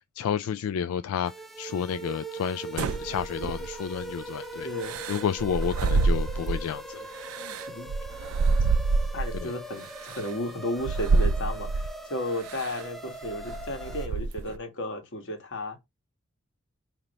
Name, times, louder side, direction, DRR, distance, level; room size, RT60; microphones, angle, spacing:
voice 1, 0.2-1.3 1.6-4.7 5.1-7.1 9.4-9.5, left 8 dB, 85° left, 0.3 m, -30 dB
sound 1, 1.2-14.1, right 2 dB, ahead, 0.6 m, -41 dB
sound 2, 2.8-4.0 4.8-6.7 7.2-9.4 10.1-10.2 10.8-11.9 12.5-12.8 13.2-14.6, right 3 dB, 80° right, 0.4 m, -27 dB
voice 2, 4.6-5.0 7.4-7.9 9.1-15.8, left 1 dB, 60° left, 1.4 m, -34 dB
5.2 x 2.9 x 3.0 m
head